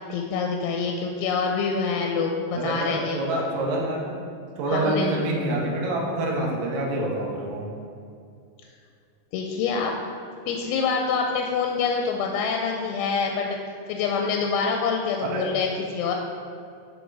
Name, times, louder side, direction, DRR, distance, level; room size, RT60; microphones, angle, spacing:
voice 1, 0.1-3.2 4.7-5.1 9.3-10.0 10.5-13.6 13.9-16.1, left 5 dB, 85° left, 2 dB, 2.5 m, -26 dB
voice 2, 2.5-4.2 4.6-7.6 15.2-15.4, right 1 dB, 65° right, -3 dB, 2.1 m, -26 dB
10.0 x 3.6 x 4.7 m, 2.4 s
omnidirectional pair, 4.4 m